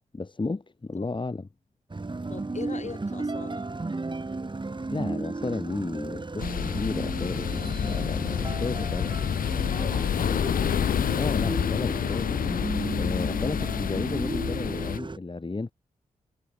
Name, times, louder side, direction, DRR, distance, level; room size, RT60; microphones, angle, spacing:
voice 1, 0.1-1.5 4.9-9.1 11.1-12.4 12.9-15.7, left 3 dB, 35° left, 3.0 m, -33 dB
sound 1, 1.9-15.2, right 3 dB, 35° right, 3.8 m, -34 dB
voice 2, 2.3-3.6 9.6-10.4, left 4 dB, 55° left, 6.0 m, -40 dB
sound 2, 6.4-15.0, left 8 dB, 85° left, 2.5 m, -28 dB
cardioid pair, 50°, 14 cm